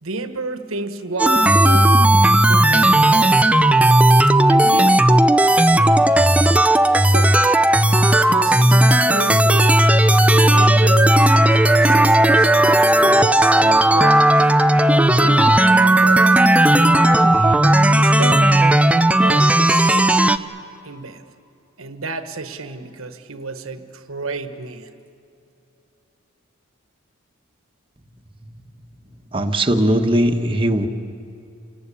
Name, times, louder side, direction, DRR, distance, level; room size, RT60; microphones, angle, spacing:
voice 1, 0.0-3.3 4.5-5.3 5.7-6.2 7.1-7.4 8.3-9.8 10.2-14.4 15.2-16.4 16.8-18.7 19.1-20.2 20.8-21.2 21.8-24.9, right 3 dB, 70° right, 9 dB, 1.3 m, -31 dB
sound 1, 1.2-20.4, right 1 dB, 5° right, 0.6 m, -14 dB
voice 2, 29.3-30.9, right 1 dB, 25° right, 3 dB, 1.3 m, -19 dB
29.0 x 19.0 x 8.4 m, 2.7 s
head